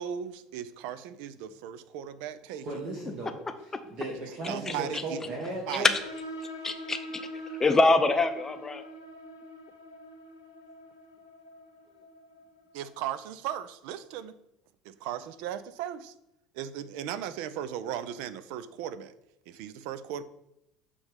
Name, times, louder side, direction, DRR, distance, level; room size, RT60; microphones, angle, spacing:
voice 1, 0.0-2.7 4.5-5.2 5.7-5.9 12.7-14.4 14.8-16.1 16.5-19.1 19.5-20.2, right 10 dB, 60° right, 14 dB, 0.4 m, -37 dB
voice 2, 2.6-3.3 3.9-5.9, right 2 dB, 45° right, -2 dB, 1.4 m, -35 dB
voice 3, 4.7-5.0 6.6-7.2 7.5-8.8, left 3 dB, 20° left, 9 dB, 0.5 m, -25 dB
sound 1, 5.7-13.0, right 1 dB, 80° left, 0.8 m, -44 dB
7.0 x 3.3 x 5.1 m, 0.85 s
figure-of-eight pair, 65°, 2 cm